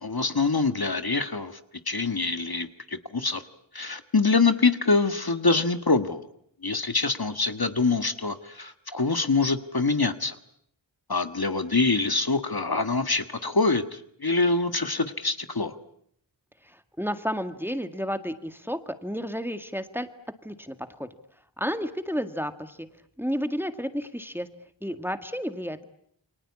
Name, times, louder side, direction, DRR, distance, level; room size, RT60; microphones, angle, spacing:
voice 1, 0.0-1.6 1.9-3.4 3.7-6.3 6.6-10.3 11.1-15.7, left 3 dB, 55° left, 10 dB, 1.6 m, -25 dB
voice 2, 16.6-20.1 20.4-21.1 21.6-22.9 23.2-24.5 24.8-25.9, equal, 5° right, 9 dB, 1.9 m, -31 dB
29.0 x 24.5 x 8.5 m, 0.69 s
wide cardioid pair, 50°, 45 cm